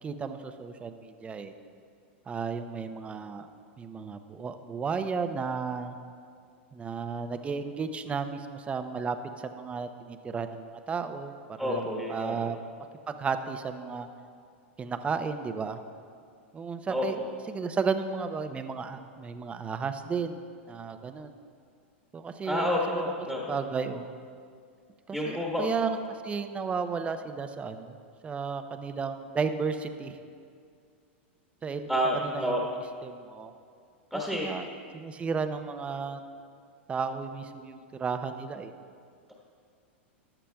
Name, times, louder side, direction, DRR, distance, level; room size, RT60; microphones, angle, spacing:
voice 1, 0.0-1.5 2.3-3.5 3.8-6.0 6.7-12.6 13.1-14.1 14.8-15.8 16.5-17.2 17.5-21.3 22.1-23.1 23.5-24.1 25.1-27.9 28.2-30.2 31.6-32.5 33.0-33.5 34.4-34.7 34.9-36.2 36.9-38.7, right 5 dB, 20° right, 8 dB, 0.6 m, -33 dB
voice 2, 11.6-12.4 16.9-17.0 22.4-23.5 25.1-25.7 31.9-32.6 34.1-34.5, equal, 5° left, -3 dB, 1.4 m, -29 dB
15.0 x 11.0 x 2.3 m, 2.3 s
hypercardioid pair, 115°, 6 cm